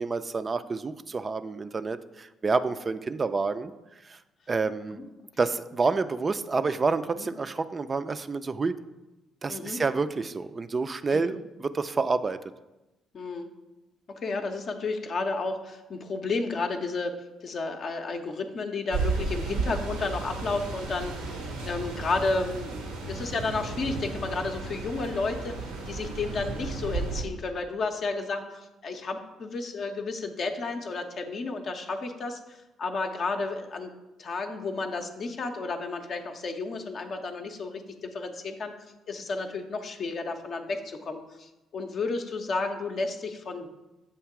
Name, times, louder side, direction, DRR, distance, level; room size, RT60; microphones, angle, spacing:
voice 1, 0.0-3.7 4.0-4.2 4.5-5.0 5.4-8.8 9.4-12.4, right 4 dB, 35° right, 12 dB, 0.3 m, -28 dB
voice 2, 9.5-9.8 11.1-11.3 13.1-13.5 14.1-17.1 17.4-25.6 25.9-33.9 34.2-43.7, left 3 dB, 50° left, 5 dB, 0.5 m, -32 dB
sound 1, 18.9-27.2, right 3 dB, 75° right, 0.7 m, -33 dB
7.1 x 2.8 x 4.7 m, 1.0 s
figure-of-eight pair, 45°, 0 cm